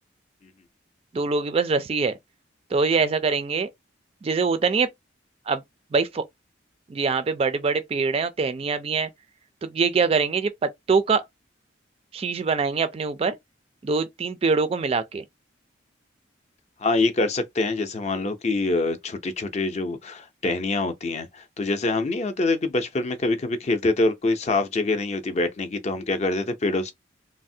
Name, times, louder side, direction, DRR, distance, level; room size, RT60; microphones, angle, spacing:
voice 1, 1.1-2.1 2.7-3.7 4.2-4.9 5.5-5.6 5.9-6.2 6.9-9.1 9.6-11.2 12.1-13.4 13.8-15.2, right 4 dB, 30° right, 0.3 m, -23 dB
voice 2, 16.8-26.9, left 2 dB, 35° left, 0.5 m, -25 dB
3.2 x 2.0 x 2.6 m
head